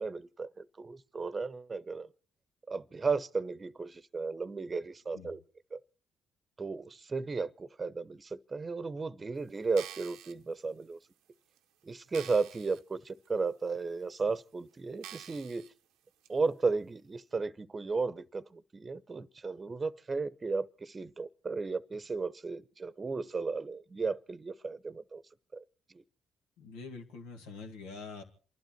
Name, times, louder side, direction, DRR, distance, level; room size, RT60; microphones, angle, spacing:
voice 1, 0.0-2.1 2.7-5.4 5.7-5.8 6.6-11.0 11.8-15.7 16.3-25.2 25.5-25.6, right 4 dB, 35° right, 0.8 m, -34 dB
sound 1, 9.6-10.3 11.0-11.1 11.6-11.7 12.1-12.8 13.2-13.3 14.1-14.2 15.0-15.7 16.2-16.3, right 12 dB, 75° right, 0.7 m, -47 dB
voice 2, 26.6-28.2, left 4 dB, 85° left, 1.9 m, -45 dB
28.0 x 12.0 x 4.4 m
hypercardioid pair, 50°, 0 cm